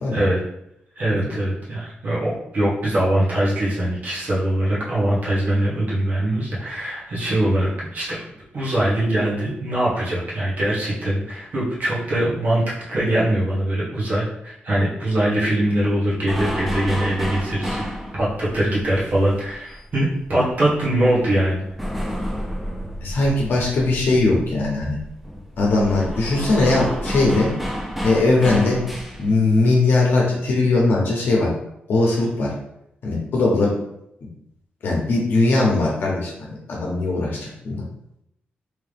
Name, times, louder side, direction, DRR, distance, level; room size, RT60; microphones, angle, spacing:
voice 1, 1.0-8.2 8.5-17.8 18.1-21.6, right 1 dB, 50° right, -7 dB, 1.2 m, -22 dB
sound 1, 16.2-20.5 20.8-29.4, equal, 5° right, 0.5 m, -30 dB
voice 2, 23.0-25.0 25.6-27.5 28.0-28.8 29.2-31.5 31.9-32.5 33.0-33.7 34.8-37.8, left 2 dB, 65° left, -3 dB, 0.9 m, -20 dB
3.4 x 2.9 x 3.4 m, 0.79 s
wide cardioid pair, 170°, 4 cm